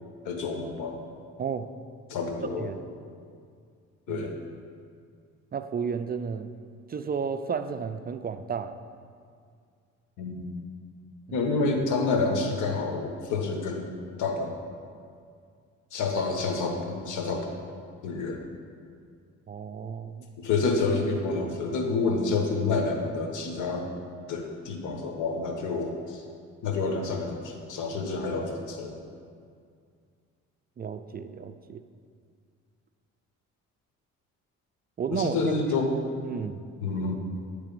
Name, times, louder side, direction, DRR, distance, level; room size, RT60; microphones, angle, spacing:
voice 1, 0.2-1.0 2.1-2.7 4.1-4.3 10.2-10.5 11.3-13.9 14.2-14.5 15.9-17.5 18.0-18.4 20.4-23.9 24.3-26.2 26.6-29.0 35.1-36.0 36.8-37.2, left 3 dB, 85° left, 2 dB, 1.1 m, -28 dB
voice 2, 5.5-6.5 6.9-8.8 11.3-11.4 19.5-20.3 30.8-31.8 35.0-35.4 36.2-36.6, right 6 dB, 30° right, 10 dB, 0.4 m, -32 dB
9.2 x 3.3 x 6.7 m, 2.2 s
cardioid pair, 90°, 30 cm